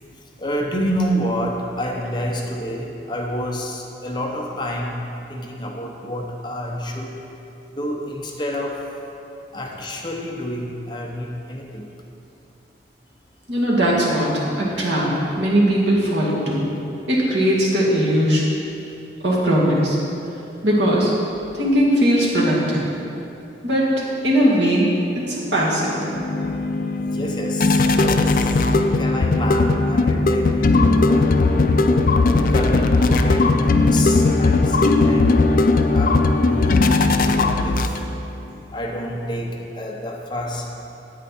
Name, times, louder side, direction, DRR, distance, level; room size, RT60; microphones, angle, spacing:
voice 1, 0.4-7.2 7.7-8.9 9.5-11.9 21.4-21.5 27.0-28.6 29.0-31.3 32.5-38.0 38.7-40.8, equal, 25° left, 0 dB, 0.8 m, -29 dB
voice 2, 13.5-14.3 14.6-15.1 15.4-16.6 17.1-18.4 19.2-20.0 20.6-21.1 21.5-22.9 23.6-24.9 25.1-26.2, equal, 85° right, -5 dB, 2.2 m, -19 dB
sound 1, 25.5-38.3, left 3 dB, 50° left, 0.4 m, -18 dB
9.2 x 8.8 x 4.3 m, 2.8 s
head